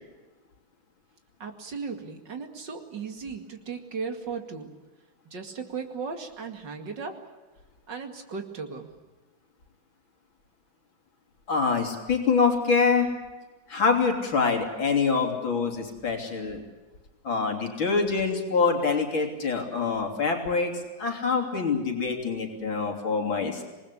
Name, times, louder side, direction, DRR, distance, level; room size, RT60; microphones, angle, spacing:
voice 1, 1.4-4.7 5.2-7.2 7.9-8.9, right 5 dB, 60° right, 5 dB, 3.0 m, -36 dB
voice 2, 11.5-13.1 13.7-16.6 17.2-20.7 21.0-23.6, left 5 dB, 75° left, 3 dB, 4.0 m, -25 dB
27.0 x 19.5 x 8.5 m, 1.2 s
omnidirectional pair, 2.2 m